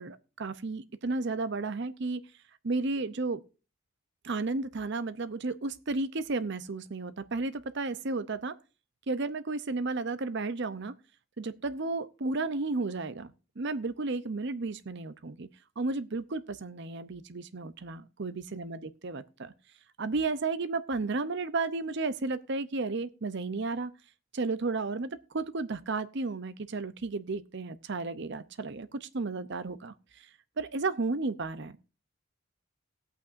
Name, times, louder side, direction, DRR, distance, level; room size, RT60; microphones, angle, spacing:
voice 1, 0.0-2.2 2.6-3.4 4.2-8.6 9.1-10.9 11.4-15.5 15.8-19.5 20.0-23.9 24.3-30.3 30.6-31.8, right 3 dB, 55° right, 0.7 m, -33 dB
18.5 x 8.5 x 2.6 m
head